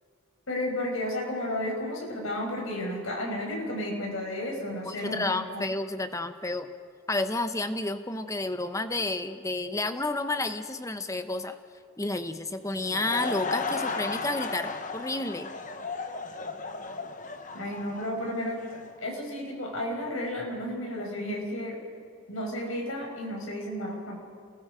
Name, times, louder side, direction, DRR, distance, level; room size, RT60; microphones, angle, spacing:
voice 1, 0.5-5.6 17.5-18.6 19.0-21.8 22.3-24.2, left 1 dB, 85° left, 0 dB, 5.4 m, -32 dB
voice 2, 4.8-6.7 7.1-11.6 12.0-15.5, left 2 dB, 15° left, 10 dB, 0.9 m, -31 dB
Laughter / Crowd, 12.6-18.9, left 3 dB, 40° left, 1.1 m, -35 dB
28.5 x 20.5 x 5.1 m, 2.3 s
head